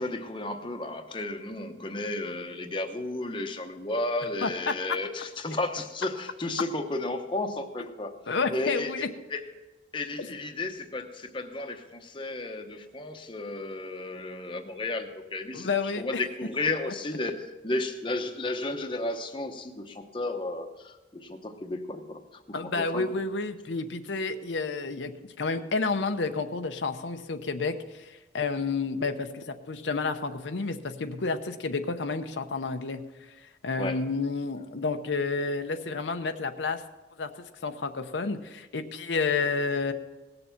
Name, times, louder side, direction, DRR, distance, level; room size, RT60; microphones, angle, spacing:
voice 1, 0.0-9.4 9.9-23.1 33.8-34.0, left 2 dB, 25° left, 5 dB, 0.9 m, -33 dB
voice 2, 8.3-9.1 15.5-16.2 22.5-33.0 33.4-36.8 37.2-37.3 37.6-39.9, left 4 dB, 80° left, 7 dB, 0.7 m, -30 dB
18.0 x 6.9 x 5.8 m, 1.2 s
head